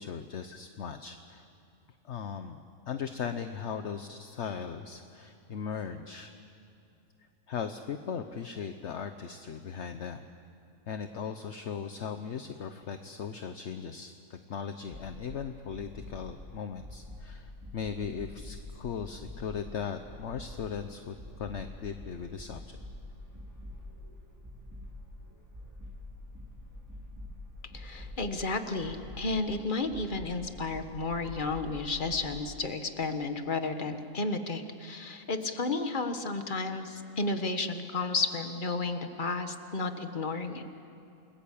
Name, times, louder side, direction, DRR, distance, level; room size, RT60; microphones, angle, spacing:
voice 1, 0.0-1.5 2.0-6.3 7.2-10.3 10.9-22.6, left 6 dB, 60° left, 8 dB, 1.1 m, -38 dB
sound 1, 14.9-32.3, left 1 dB, 10° right, 3.3 m, -46 dB
voice 2, 27.7-40.7, left 3 dB, 40° left, 7 dB, 1.6 m, -32 dB
29.5 x 20.5 x 8.6 m, 2.8 s
omnidirectional pair, 1.4 m